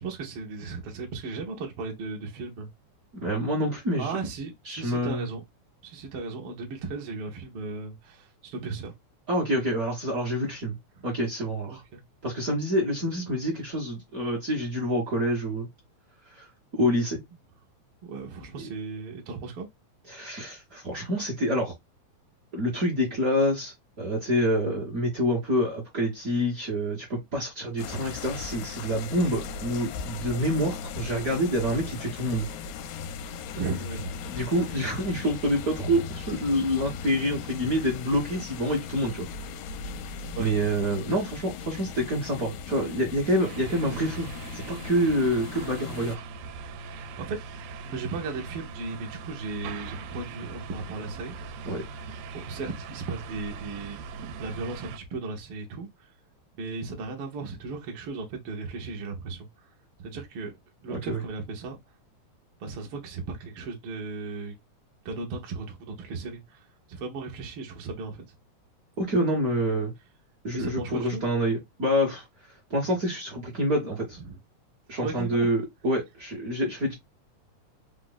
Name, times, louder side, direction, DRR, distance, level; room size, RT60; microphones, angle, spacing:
voice 1, 0.0-2.7 4.0-5.4 5.8-8.9 11.7-12.0 18.1-19.7 33.5-34.1 40.3-40.6 46.9-47.4 47.8-51.4 52.3-54.0 54.4-56.1 56.6-59.7 60.0-60.5 60.8-61.8 62.6-64.6 65.0-68.2 69.7-69.8 70.5-71.2 74.2-74.4 75.0-75.5, right 4 dB, 65° right, 1.5 m, -36 dB
voice 2, 3.1-4.2 4.7-5.3 9.3-10.8 11.0-11.8 12.2-15.7 16.3-17.2 18.6-18.7 20.1-21.7 22.5-32.5 34.3-39.3 40.4-44.3 44.5-46.2 51.6-51.8 60.9-61.2 69.0-69.9 70.4-72.3 72.7-74.2 74.9-76.9, equal, 50° right, 1.1 m, -27 dB
sound 1, 27.8-46.2, left 6 dB, 80° left, 1.6 m, -38 dB
sound 2, 43.4-55.0, right 4 dB, 85° right, 2.1 m, -40 dB
4.7 x 2.5 x 3.9 m
omnidirectional pair, 3.5 m